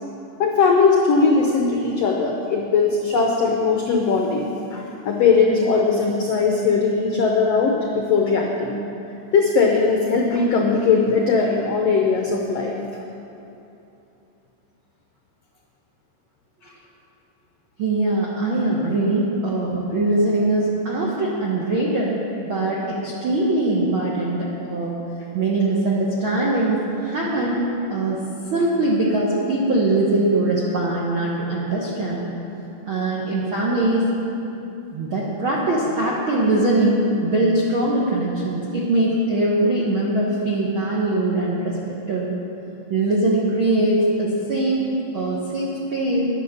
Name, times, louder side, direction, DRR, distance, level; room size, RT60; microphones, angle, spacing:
voice 1, 0.4-4.5 4.7-8.8 9.3-12.8 16.6-16.7, left 4 dB, 85° left, 0 dB, 1.4 m, -19 dB
voice 2, 17.8-22.2 22.4-25.0 25.3-27.6 27.9-28.2 28.5-32.3 32.8-34.1 34.9-41.8 42.1-42.3 42.9-44.9 45.1-46.3, right 2 dB, 70° right, -5 dB, 1.2 m, -22 dB
10.0 x 9.7 x 6.6 m, 2.8 s
omnidirectional pair, 4.1 m